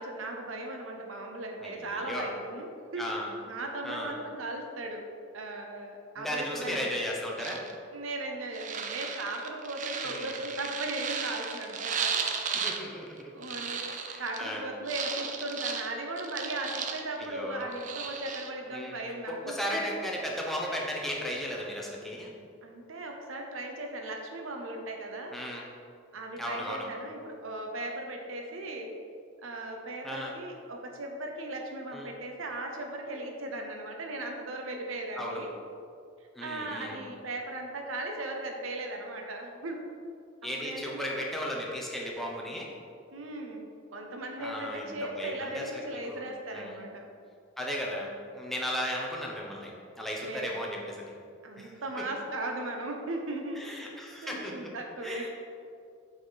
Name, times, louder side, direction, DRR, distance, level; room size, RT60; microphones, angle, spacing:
voice 1, 0.0-3.2 3.4-5.0 5.3-6.9 7.9-12.2 13.3-19.8 22.6-25.4 26.1-28.9 29.4-35.5 36.4-39.8 40.6-41.1 43.1-43.7 43.9-47.0 50.2-50.7 51.4-53.9 54.2-55.3, right 2 dB, 85° right, 2 dB, 0.8 m, -37 dB
voice 2, 1.6-2.2 3.0-3.3 3.8-4.2 6.2-7.6 10.0-10.3 12.5-13.3 13.9-14.6 17.2-17.7 18.7-19.0 19.3-22.3 25.3-25.7 26.4-26.9 30.0-30.3 31.9-32.1 35.2-35.4 36.3-37.0 40.4-42.7 44.4-45.8 46.1-46.2 46.5-46.8 47.6-51.1 51.6-52.0 53.6-54.6 55.0-55.3, equal, ahead, -3 dB, 0.9 m, -36 dB
sound 1, 7.4-7.7 8.5-12.8 13.1-14.4 14.9-17.2 17.6-18.5, right 6 dB, 40° right, 0.5 m, -35 dB
7.8 x 4.2 x 4.1 m, 2.4 s
head